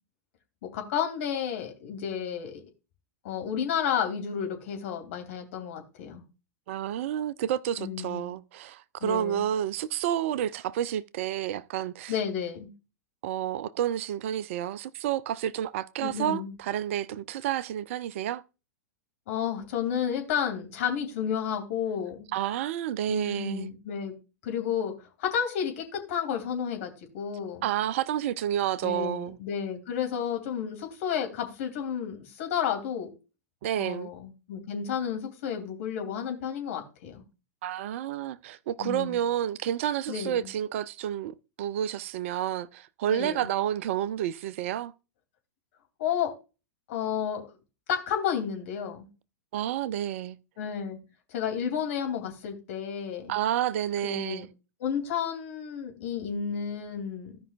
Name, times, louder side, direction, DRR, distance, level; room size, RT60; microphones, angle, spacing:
voice 1, 0.7-2.6 3.2-6.2 7.8-8.3 9.0-9.5 12.1-12.7 16.0-16.6 19.3-22.3 23.1-24.1 24.4-27.7 28.8-33.1 33.8-37.2 38.8-39.2 40.1-40.5 43.1-43.5 46.0-46.3 46.9-47.5 47.9-49.1 50.6-51.0 51.3-53.3 54.0-54.4 54.8-57.4, left 8 dB, 50° left, 2.8 m, -31 dB
voice 2, 6.7-12.1 13.2-18.4 22.3-23.7 27.6-29.4 33.6-34.1 37.6-44.9 49.5-50.4 53.3-54.5, right 11 dB, 50° right, 0.5 m, -30 dB
16.0 x 5.5 x 2.4 m
figure-of-eight pair, 100°, 9 cm